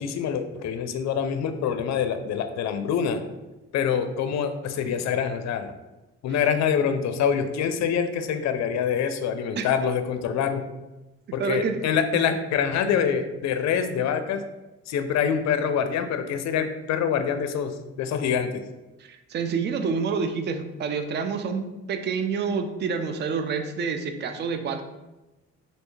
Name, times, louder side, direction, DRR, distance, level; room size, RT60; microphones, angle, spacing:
voice 1, 0.0-3.2 3.7-5.7 6.2-10.6 11.3-14.4 14.9-18.6, left 7 dB, 65° left, 8 dB, 0.4 m, -25 dB
voice 2, 11.4-11.8 12.1-12.2 19.0-24.8, right 5 dB, 35° right, 7 dB, 0.4 m, -28 dB
3.2 x 2.7 x 3.1 m, 1.1 s
cardioid pair, 90°, 30 cm